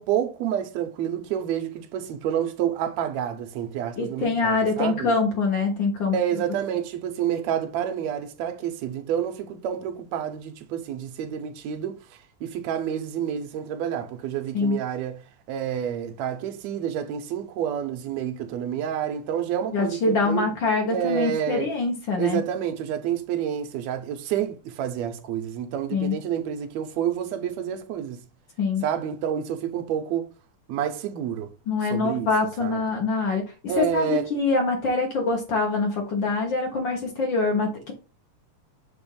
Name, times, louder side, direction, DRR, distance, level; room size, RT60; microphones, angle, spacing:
voice 1, 0.0-5.1 6.1-12.0 12.4-15.2 15.5-20.5 20.9-21.8 22.2-28.2 28.8-30.3 30.7-31.5 31.8-32.3 32.6-32.9 33.7-34.4, right 9 dB, 75° right, 1.9 m, -29 dB
voice 2, 4.0-6.1 14.5-14.8 19.7-22.4 25.9-26.1 28.6-28.8 31.7-33.4 33.8-37.9, left 3 dB, 60° left, 1.3 m, -24 dB
6.9 x 2.5 x 5.4 m
omnidirectional pair, 3.4 m